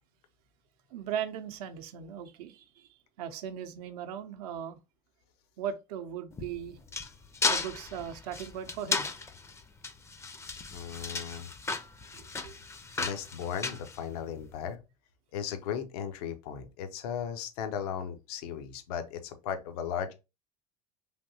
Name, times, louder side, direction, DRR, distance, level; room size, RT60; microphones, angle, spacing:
voice 1, 0.9-2.9 3.2-4.8 5.6-6.8 7.5-9.1 12.1-12.6, right 9 dB, 80° right, 0.6 m, -38 dB
sound 1, 6.3-14.6, left 4 dB, 15° left, 0.4 m, -35 dB
voice 2, 10.7-11.5 13.0-14.8 15.3-20.1, left 8 dB, 80° left, 0.6 m, -36 dB
3.4 x 2.7 x 2.6 m
supercardioid pair, 105°, 20 cm